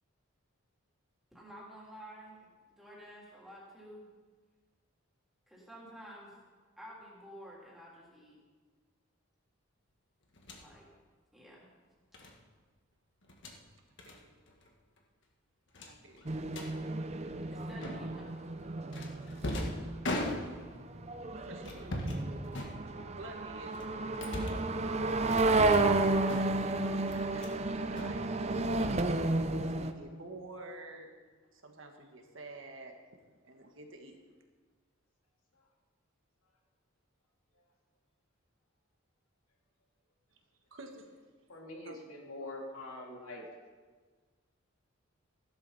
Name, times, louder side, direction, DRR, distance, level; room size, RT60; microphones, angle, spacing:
voice 1, 1.3-2.4 2.7-4.1 5.5-6.3 6.8-8.3 10.6-10.9 11.3-11.6 17.1-18.3, equal, ahead, -6 dB, 3.5 m, -51 dB
sound 1, 10.4-10.7 12.1-12.3 13.2-13.6 14.0-14.2 14.5-14.7 15.0-15.1 15.7-16.7 17.8-18.3 18.9-20.8 21.6-22.2 22.5-23.2 23.7-24.7 25.3-26.0 26.3-26.7 27.1-27.6 27.9-28.8, left 1 dB, 55° left, 1.7 m, -39 dB
voice 2, 14.0-14.5 15.8-16.3 21.5-21.9 23.1-24.5 25.3-25.8 26.6-28.9 29.6-31.1 31.5-33.0 33.4-34.2 40.7-41.2 41.8-42.0, right 2 dB, 60° right, 3 dB, 1.5 m, -50 dB
sound 2, 16.3-29.9, right 2 dB, 30° right, 0.6 m, -32 dB
voice 3, 41.5-43.4, left 1 dB, 80° left, -1 dB, 2.7 m, -44 dB
16.0 x 11.5 x 4.2 m, 1.5 s
head